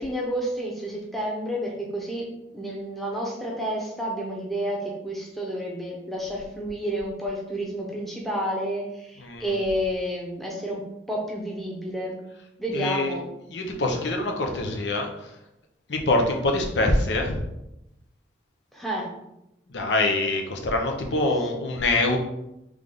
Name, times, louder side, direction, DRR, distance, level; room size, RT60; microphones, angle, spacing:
voice 1, 0.0-2.3 2.5-12.2 12.6-13.3 18.7-19.1, equal, ahead, -3 dB, 0.8 m, -30 dB
voice 2, 12.7-13.1 13.5-15.1 15.9-17.4 19.7-22.2, left 2 dB, 85° left, 2 dB, 0.7 m, -24 dB
3.5 x 3.2 x 3.8 m, 0.87 s
head